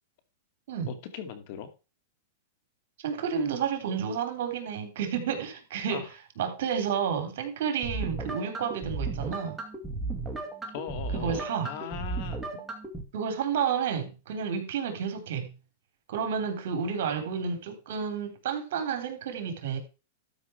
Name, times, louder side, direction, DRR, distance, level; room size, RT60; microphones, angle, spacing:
voice 1, 0.9-1.7 5.9-6.1 10.7-12.4, left 8 dB, 50° left, 9 dB, 2.4 m, -39 dB
voice 2, 3.0-6.0 6.4-9.6 11.1-11.7 13.1-15.5 16.1-19.8, right 7 dB, 65° right, 7 dB, 3.4 m, -31 dB
sound 1, 7.8-13.0, right 3 dB, 5° right, 2.1 m, -35 dB
12.5 x 5.7 x 4.5 m, 0.30 s
supercardioid pair, 155°, 0 cm